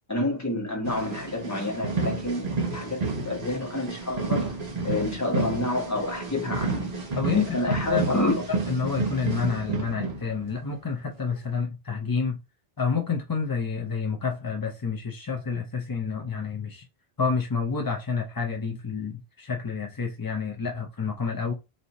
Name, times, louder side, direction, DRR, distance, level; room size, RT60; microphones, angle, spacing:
voice 1, 0.1-4.6 4.8-6.9 7.3-8.3, left 2 dB, 15° left, 1.2 m, -29 dB
sound 1, 0.8-10.7 11.3-11.5, right 3 dB, 40° right, 0.8 m, -30 dB
voice 2, 7.2-8.1 8.5-12.4 12.8-16.8 17.2-21.5, left 5 dB, 35° left, 0.3 m, -29 dB
4.1 x 2.7 x 2.9 m
omnidirectional pair, 1.1 m